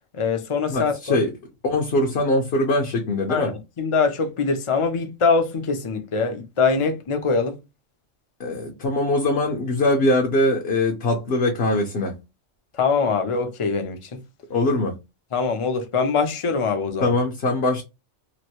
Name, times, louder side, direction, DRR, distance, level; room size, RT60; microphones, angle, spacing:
voice 1, 0.1-1.2 3.3-7.6 12.8-14.2 15.3-17.1, left 5 dB, 35° left, 0.5 m, -23 dB
voice 2, 0.7-1.3 1.6-3.5 8.4-12.2 14.5-15.0 17.0-17.8, left 1 dB, 60° left, 0.9 m, -22 dB
3.0 x 2.5 x 2.8 m
omnidirectional pair, 1.3 m